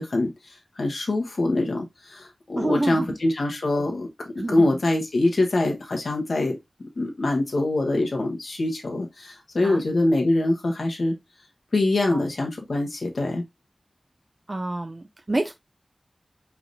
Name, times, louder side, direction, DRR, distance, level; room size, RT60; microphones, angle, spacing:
voice 1, 0.0-4.1 4.5-6.6 7.0-11.1 11.7-13.4, left 2 dB, 80° left, 1.3 m, -24 dB
voice 2, 2.6-3.1 3.7-3.8 4.4-4.8 9.6-9.8 12.1-12.2 14.5-15.5, right 2 dB, 40° right, 0.5 m, -28 dB
4.7 x 3.4 x 2.6 m
wide cardioid pair, 55°, 0 cm